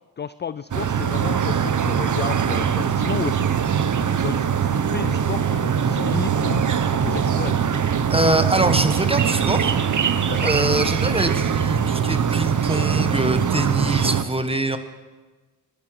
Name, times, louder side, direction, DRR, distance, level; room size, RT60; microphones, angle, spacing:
voice 1, 0.2-3.6 4.0-7.6 10.3-10.6, left 7 dB, 25° left, 15 dB, 0.4 m, -32 dB
sound 1, 0.7-14.2, right 7 dB, 45° right, 0.9 m, -22 dB
voice 2, 8.1-9.7 10.4-14.8, right 1 dB, 15° right, 9 dB, 1.4 m, -23 dB
20.0 x 12.5 x 4.9 m, 1.3 s
cardioid pair, 70°, 43 cm